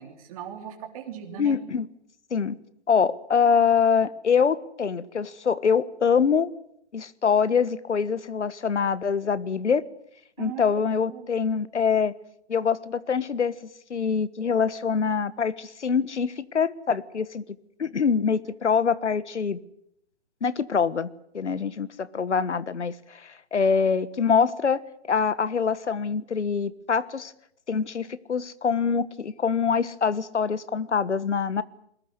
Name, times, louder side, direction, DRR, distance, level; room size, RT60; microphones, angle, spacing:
voice 1, 0.0-1.6 10.4-11.3 18.4-18.5, right 9 dB, 30° right, 3.1 m, -39 dB
voice 2, 1.4-1.9 2.3-2.6 2.9-6.5 6.9-9.8 10.4-12.1 12.5-13.6 13.9-17.5 17.8-19.6 20.4-21.1 21.3-24.8 25.1-27.3 27.7-31.6, left 6 dB, 80° left, 1.4 m, -24 dB
21.5 x 19.5 x 9.5 m
hypercardioid pair, 155°, 34 cm